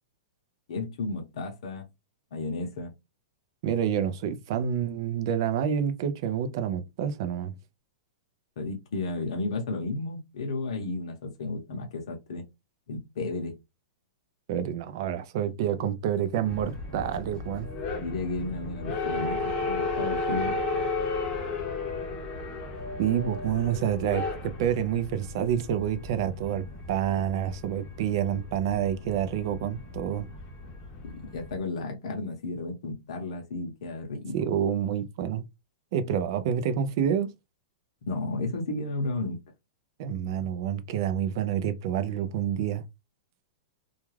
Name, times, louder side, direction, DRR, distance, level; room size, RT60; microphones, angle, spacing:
voice 1, 0.7-1.9 2.3-2.9 8.6-12.4 12.9-13.5 18.0-20.6 31.0-34.4 38.1-39.4, left 3 dB, 60° left, 0.7 m, -33 dB
voice 2, 3.6-7.5 14.5-17.7 23.0-30.3 34.3-35.4 35.9-37.3 40.0-42.8, right 9 dB, 40° right, 0.4 m, -28 dB
sound 1, 16.4-31.6, left 3 dB, 25° left, 0.7 m, -34 dB
2.3 x 2.2 x 3.1 m
supercardioid pair, 170°, 3 cm